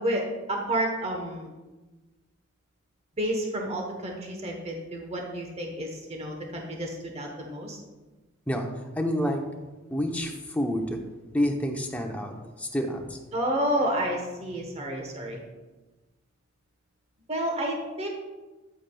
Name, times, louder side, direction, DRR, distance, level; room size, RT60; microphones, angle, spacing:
voice 1, 0.0-1.5 3.2-7.8 13.3-15.4 17.3-18.1, right 1 dB, 30° right, 2 dB, 1.0 m, -30 dB
voice 2, 8.9-9.4 9.9-11.0 11.3-13.2, equal, 10° left, 2 dB, 0.7 m, -28 dB
8.8 x 8.2 x 2.3 m, 1.2 s
head